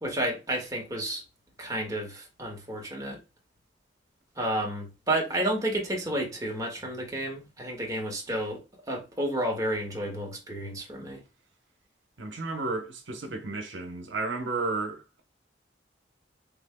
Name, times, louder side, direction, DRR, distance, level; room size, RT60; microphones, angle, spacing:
voice 1, 0.0-1.2 1.6-3.2 4.4-11.2, right 1 dB, 20° right, 1.7 m, -31 dB
voice 2, 12.2-15.2, right 3 dB, 80° right, 0.9 m, -33 dB
5.8 x 3.5 x 2.2 m
head